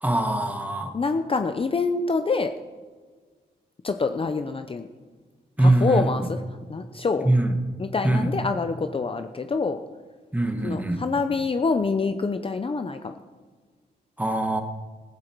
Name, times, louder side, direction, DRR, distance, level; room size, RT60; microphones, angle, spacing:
voice 1, 0.0-0.9 5.6-6.0 7.2-7.6 8.0-8.3 10.3-11.0 14.2-14.6, right 1 dB, 10° right, 6 dB, 1.5 m, -22 dB
voice 2, 0.9-2.5 3.8-4.9 5.6-6.4 6.7-7.3 7.8-9.8 10.6-13.1, left 4 dB, 30° left, 8 dB, 0.6 m, -26 dB
16.0 x 14.5 x 4.6 m, 1.5 s
wide cardioid pair, 125°, 19 cm